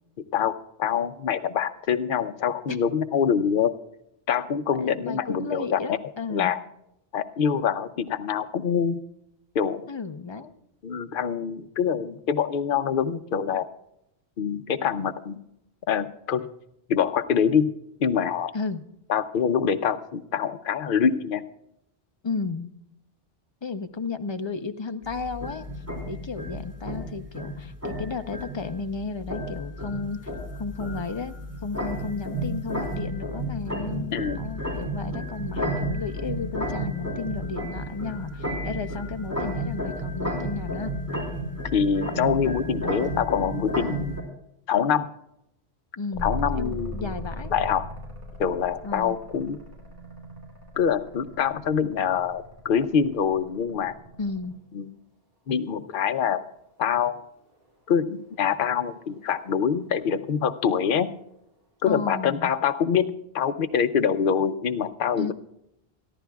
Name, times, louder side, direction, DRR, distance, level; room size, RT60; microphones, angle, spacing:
voice 1, 0.8-3.7 4.3-5.8 6.3-6.6 7.1-9.0 9.5-9.9 10.8-13.7 14.4-15.4 15.9-16.5 16.9-17.7 18.0-18.5 19.1-21.4 34.1-34.4 41.7-44.2 44.7-45.1 46.2-47.1 47.5-47.8 48.4-49.6 50.8-53.9 54.7-54.9 55.5-56.4 56.8-57.2 57.9-61.1 61.8-65.3, left 7 dB, 60° left, 9 dB, 0.8 m, -25 dB
voice 2, 4.8-6.5 9.9-10.5 18.5-18.8 22.2-22.7 23.6-25.7 26.1-30.3 30.6-40.9 46.0-47.5 48.8-49.2 54.2-54.5 61.9-62.5 65.2-65.3, left 4 dB, 30° left, 9 dB, 0.6 m, -33 dB
sound 1, 25.0-44.2, equal, 15° right, 3.6 m, -32 dB
sound 2, 46.1-54.7 56.9-61.5, left 1 dB, 60° right, 4.4 m, -40 dB
28.0 x 11.0 x 2.3 m, 0.80 s
omnidirectional pair, 1.1 m